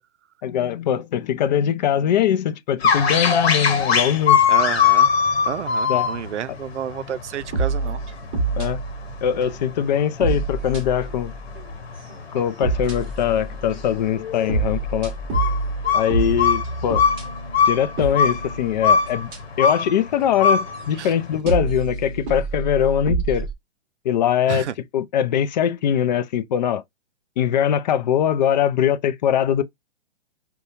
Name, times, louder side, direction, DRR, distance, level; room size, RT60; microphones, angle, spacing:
voice 1, 0.4-4.4 5.9-6.1 8.6-8.8 9.2-11.3 12.3-15.1 15.9-17.0 17.7-19.3 19.6-23.5 24.0-24.7 24.9-26.8 27.4-29.6, left 9 dB, 40° left, 0.4 m, -22 dB
sound 1, 2.8-21.4, left 7 dB, 65° left, 1.0 m, -22 dB
voice 2, 4.5-5.1 5.5-8.0 21.0-21.1 24.5-24.7, right 9 dB, 85° right, 0.5 m, -30 dB
sound 2, 7.4-9.8 10.2-11.7 12.1-14.0 14.5-19.7 20.1-20.3 20.7-21.0 21.5-23.5, right 3 dB, 30° right, 1.0 m, -28 dB
5.3 x 2.3 x 2.5 m
hypercardioid pair, 130°, 34 cm